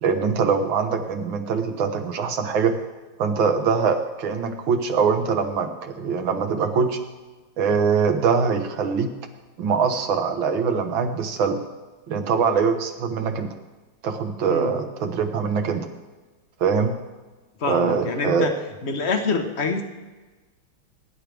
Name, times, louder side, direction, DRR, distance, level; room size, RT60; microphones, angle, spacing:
voice 1, 0.0-2.8 3.2-7.0 7.6-9.1 9.6-11.6 12.1-13.5 14.0-15.9 16.6-16.9 17.7-18.5, right 5 dB, 65° right, 6 dB, 1.9 m, -23 dB
voice 2, 17.6-18.5 18.8-19.8, left 4 dB, 40° left, 5 dB, 1.1 m, -25 dB
21.0 x 10.5 x 3.5 m, 1.3 s
omnidirectional pair, 2.3 m